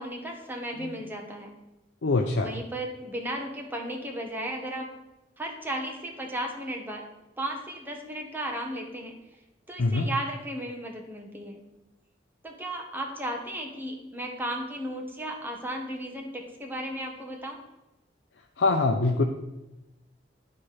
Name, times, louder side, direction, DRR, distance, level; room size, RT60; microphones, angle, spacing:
voice 1, 0.0-1.5 2.4-4.9 5.4-7.0 7.4-9.1 9.7-11.6 12.4-17.6, right 1 dB, 10° right, 1 dB, 1.2 m, -35 dB
voice 2, 2.0-2.5 9.8-10.1 18.6-19.2, left 3 dB, 85° left, 3 dB, 0.6 m, -23 dB
10.5 x 4.3 x 4.9 m, 0.99 s
head